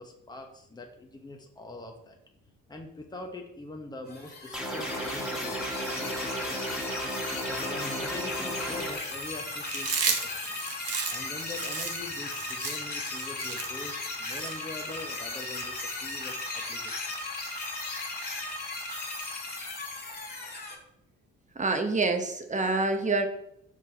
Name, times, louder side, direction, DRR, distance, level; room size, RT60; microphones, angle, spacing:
voice 1, 0.0-2.2 2.7-6.6 7.4-10.4 11.1-17.0, left 2 dB, 15° left, 2 dB, 1.1 m, -43 dB
sound 1, 4.1-20.7, left 2 dB, 30° left, 1.9 m, -36 dB
sound 2, 4.5-8.9, right 1 dB, ahead, 1.6 m, -34 dB
Chewing mastication, 9.7-15.1, right 5 dB, 50° right, 1.1 m, -33 dB
voice 2, 21.6-23.3, right 3 dB, 25° right, 6 dB, 0.9 m, -26 dB
5.4 x 5.1 x 4.0 m, 0.75 s
cardioid pair, 90°, 30 cm